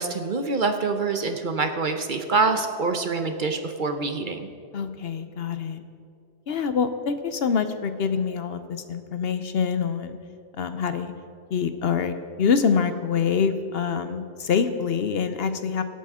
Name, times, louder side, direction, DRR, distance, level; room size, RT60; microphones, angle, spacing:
voice 1, 0.0-4.5, right 4 dB, 50° right, 7 dB, 0.8 m, -25 dB
voice 2, 4.7-5.8 6.5-10.2 10.6-11.1 11.5-15.8, left 6 dB, 60° left, 10 dB, 0.8 m, -25 dB
24.0 x 8.4 x 3.6 m, 2.4 s
omnidirectional pair, 1.2 m